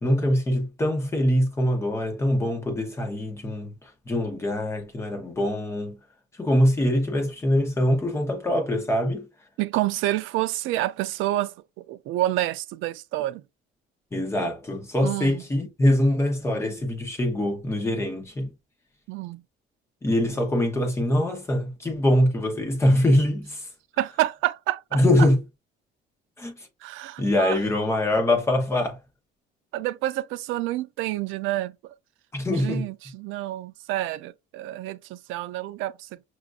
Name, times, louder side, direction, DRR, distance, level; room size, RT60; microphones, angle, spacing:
voice 1, 0.0-6.0 6.4-9.3 14.1-18.5 20.0-23.7 24.9-25.4 26.4-26.7 27.2-29.0 32.3-32.8, left 1 dB, 15° left, 0.8 m, -23 dB
voice 2, 9.6-13.4 15.0-15.4 19.1-19.4 24.0-25.3 26.8-27.6 29.7-31.9 32.6-36.2, right 15 dB, 85° right, 0.4 m, -28 dB
5.8 x 2.4 x 2.4 m
cardioid pair, 170°, 20 cm